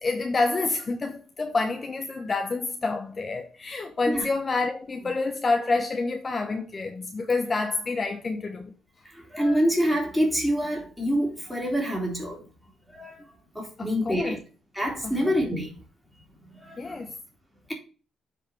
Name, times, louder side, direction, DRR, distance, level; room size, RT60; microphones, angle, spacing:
voice 1, 0.0-8.7 13.8-14.4 15.0-15.3 16.8-17.1, left 3 dB, 35° left, 1.0 m, -28 dB
voice 2, 9.3-12.4 12.9-13.3 13.6-14.4 14.7-15.7 16.6-16.9, equal, ahead, 3.6 m, -26 dB
7.4 x 4.9 x 4.6 m
cardioid pair, 90°, 0 cm